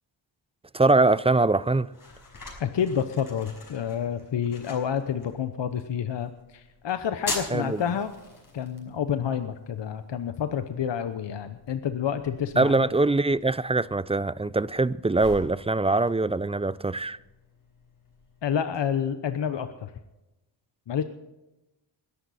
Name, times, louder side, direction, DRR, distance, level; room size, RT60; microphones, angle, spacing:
voice 1, 0.7-1.9 7.5-7.8 12.6-17.2, right 2 dB, 15° right, 0.4 m, -23 dB
sound 1, 1.3-18.8, left 2 dB, 45° left, 5.4 m, -44 dB
voice 2, 2.6-8.1 8.5-12.8 18.4-19.9 20.9-21.0, left 8 dB, 65° left, 0.9 m, -29 dB
21.0 x 11.0 x 4.2 m
cardioid pair, 80°, 46 cm